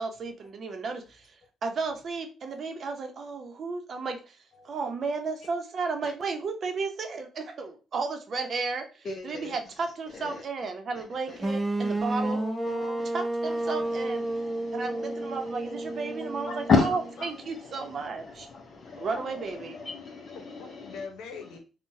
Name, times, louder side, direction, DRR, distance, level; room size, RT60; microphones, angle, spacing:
voice 1, 0.0-12.4 13.1-14.3 14.7-18.5 19.0-19.8, right 4 dB, 50° right, 5 dB, 0.7 m, -33 dB
voice 2, 9.0-9.6 10.2-10.4 10.9-11.4 13.0-13.1 13.4-21.1, left 4 dB, 50° left, 0 dB, 0.6 m, -33 dB
sound 1, 11.4-17.3, right 2 dB, 15° right, 0.3 m, -31 dB
voice 3, 12.2-13.0 20.6-21.6, left 4 dB, 90° left, 5 dB, 0.8 m, -41 dB
3.8 x 2.2 x 2.6 m, 0.33 s
cardioid pair, 90°, 0 cm